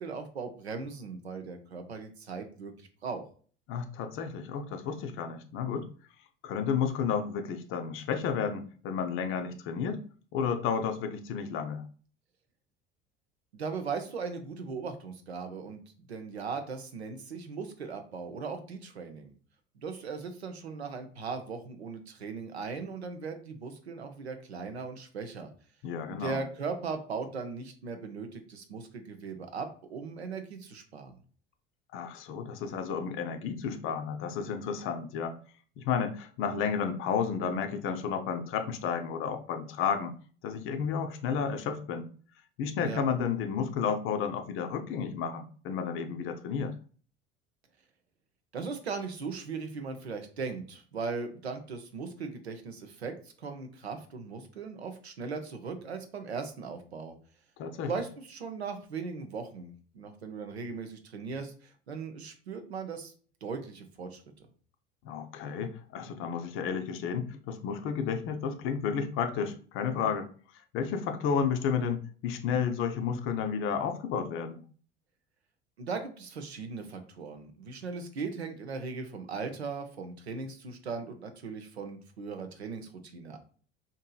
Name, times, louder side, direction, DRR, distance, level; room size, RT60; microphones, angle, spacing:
voice 1, 0.0-3.2 13.5-15.8 16.1-19.3 19.8-25.5 26.1-31.1 42.8-43.0 48.5-57.1 57.8-63.1 63.4-64.2 75.8-83.4, right 5 dB, 90° right, 7 dB, 0.5 m, -38 dB
voice 2, 3.7-5.9 6.4-10.1 10.3-11.8 25.8-26.4 31.9-35.4 35.8-40.1 40.4-42.1 42.6-46.8 57.6-57.9 65.0-70.3 70.7-74.6, left 6 dB, 45° left, 7 dB, 0.5 m, -32 dB
2.7 x 2.6 x 2.3 m, 0.42 s
figure-of-eight pair, 65°, 31 cm